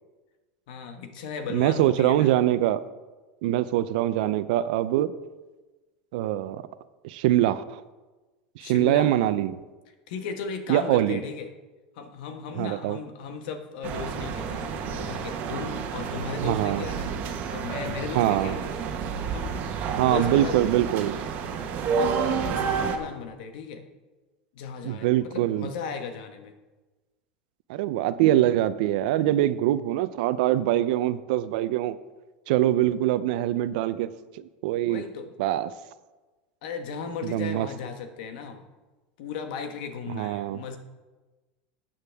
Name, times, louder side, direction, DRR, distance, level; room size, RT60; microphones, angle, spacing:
voice 1, 0.7-2.4 8.6-9.1 10.1-11.5 11.9-18.9 19.3-19.6 20.0-20.6 21.9-23.8 24.5-26.5 34.8-35.3 36.6-38.6 39.2-40.8, left 6 dB, 75° left, 6 dB, 1.5 m, -36 dB
voice 2, 1.5-2.8 3.4-5.1 6.1-6.6 7.0-7.8 8.6-9.6 10.7-11.2 12.6-13.0 16.4-16.8 18.1-18.6 20.0-21.1 24.8-25.7 27.7-32.0 32.5-34.1 34.6-35.0 35.4-35.7 37.2-37.7 40.1-40.6, right 13 dB, 70° right, 14 dB, 0.6 m, -23 dB
sound 1, 13.8-23.0, right 6 dB, 40° right, 1.4 m, -30 dB
14.5 x 8.8 x 3.6 m, 1.2 s
supercardioid pair, 135°, 5 cm